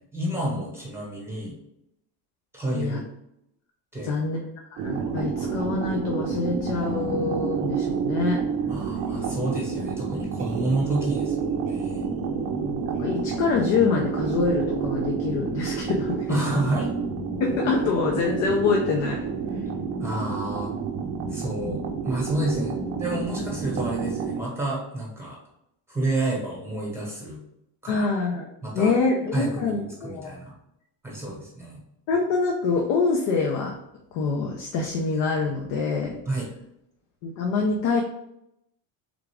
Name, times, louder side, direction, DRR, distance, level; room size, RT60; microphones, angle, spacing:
voice 1, 0.0-1.6 2.5-3.0 3.9-4.2 8.7-12.1 16.3-16.9 20.0-20.7 21.3-25.4 25.9-27.4 27.8-28.0 28.6-29.0 29.3-30.6 31.0-31.8 36.3-36.5, right 2 dB, 5° right, -4 dB, 0.9 m, -29 dB
voice 2, 4.0-4.4 4.7-8.4 12.2-16.4 17.4-19.3 21.7-21.8 27.9-28.5 28.7-30.4 32.1-33.8 34.1-36.2 37.2-38.0, left 4 dB, 90° left, 0 dB, 0.9 m, -25 dB
sound 1, 4.8-24.4, right 6 dB, 35° right, 0.4 m, -29 dB
3.7 x 3.6 x 3.5 m, 0.81 s
cardioid pair, 170°, 46 cm